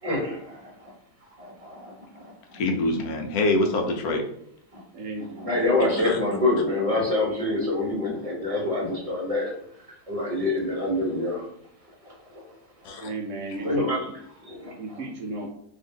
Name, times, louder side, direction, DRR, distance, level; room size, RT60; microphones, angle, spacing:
voice 1, 0.0-0.9 1.4-2.6 4.7-4.8 5.4-9.5 9.8-11.4 12.0-12.4 13.6-14.1 14.4-15.0, left 2 dB, 30° right, -3 dB, 0.8 m, -27 dB
voice 2, 2.5-4.2 6.1-6.2 12.8-13.1, left 2 dB, 75° left, 3 dB, 1.0 m, -25 dB
voice 3, 4.9-5.7 13.0-14.2 14.8-15.5, right 2 dB, 70° right, 0 dB, 0.8 m, -35 dB
2.7 x 2.6 x 3.7 m, 0.74 s
omnidirectional pair, 1.7 m